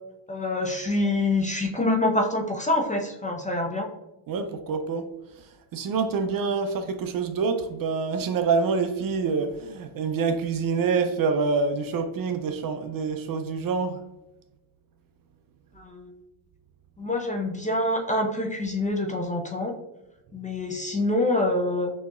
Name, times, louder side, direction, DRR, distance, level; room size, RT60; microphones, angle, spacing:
voice 1, 0.3-3.9 15.8-16.1 17.0-19.8 20.3-21.9, left 2 dB, 15° left, 0.5 m, -26 dB
voice 2, 4.3-5.1 5.7-14.0, right 5 dB, 45° right, 0.5 m, -26 dB
6.2 x 2.9 x 2.3 m
cardioid pair, 105°, 49 cm